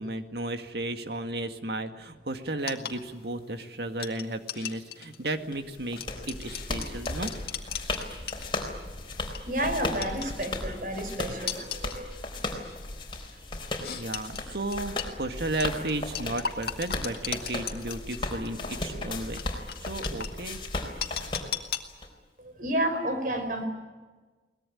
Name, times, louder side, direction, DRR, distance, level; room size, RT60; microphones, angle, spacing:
voice 1, 0.0-6.0 6.3-7.3 11.1-11.4 14.0-20.6, right 2 dB, 65° right, 7 dB, 2.0 m, -34 dB
sound 1, 2.6-8.8 9.2-9.5 10.0-10.7 11.5-12.0 12.6-12.8 13.8-15.1 15.6-18.2 18.5-18.6 19.4-20.3 21.0-21.8, left 9 dB, 60° left, 2.0 m, -36 dB
sound 2, 5.5-22.1, left 2 dB, 30° left, 4.2 m, -36 dB
voice 2, 9.5-12.1 13.7-13.8 22.4-23.7, right 1 dB, 50° right, 7 dB, 4.8 m, -31 dB
22.5 x 20.0 x 10.0 m, 1.3 s
head